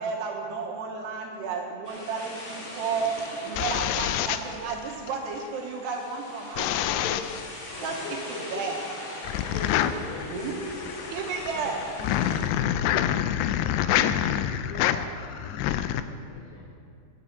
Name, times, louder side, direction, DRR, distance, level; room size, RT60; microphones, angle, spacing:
voice 1, 0.0-6.7 7.8-8.0 8.3-8.8 10.3-10.6 11.1-11.9, right 5 dB, 75° right, 0 dB, 2.9 m, -32 dB
sound 1, 1.8-12.4, left 1 dB, 50° left, 3.3 m, -41 dB
voice 2, 2.9-3.5 6.8-7.4 7.7-8.7 9.5-11.2 11.6-11.8 12.6-13.0 13.3-13.7 14.9-15.0 15.4-15.5, left 3 dB, 30° left, -6 dB, 4.0 m, -40 dB
sound 2, 3.1-5.2 6.6-7.5 9.2-16.0, left 11 dB, 90° left, 2.3 m, -27 dB
voice 3, 11.5-12.6 14.6-16.7, left 3 dB, 70° left, -1 dB, 2.7 m, -44 dB
11.5 x 7.5 x 8.3 m, 2.5 s
omnidirectional pair, 5.3 m